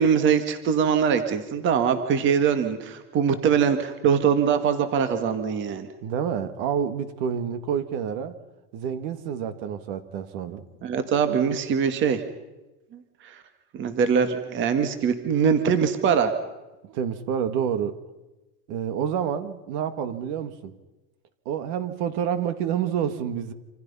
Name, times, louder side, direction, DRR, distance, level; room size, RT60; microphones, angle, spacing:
voice 1, 0.0-5.9 10.8-12.2 13.2-13.4 13.7-16.3, right 7 dB, 25° right, 9 dB, 1.9 m, -22 dB
voice 2, 6.0-8.4 8.7-10.6 16.9-18.0 18.7-20.7 21.5-23.5, right 8 dB, 45° right, 11 dB, 2.0 m, -28 dB
27.5 x 27.0 x 5.6 m, 1.0 s
supercardioid pair, 165°, 48 cm